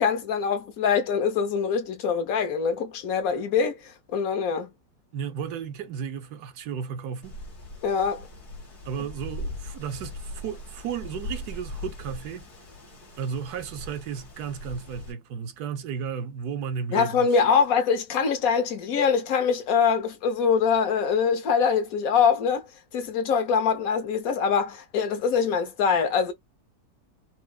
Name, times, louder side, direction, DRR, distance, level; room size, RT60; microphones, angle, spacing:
voice 1, 0.0-4.7 7.8-8.3 16.9-22.7 22.9-26.3, left 6 dB, 65° left, 1.3 m, -24 dB
voice 2, 5.1-7.4 8.8-12.5 13.2-17.3, right 7 dB, 80° right, 1.3 m, -34 dB
Wind, 7.2-15.1, left 1 dB, 85° left, 2.7 m, -40 dB
6.0 x 2.0 x 2.4 m
omnidirectional pair, 1.7 m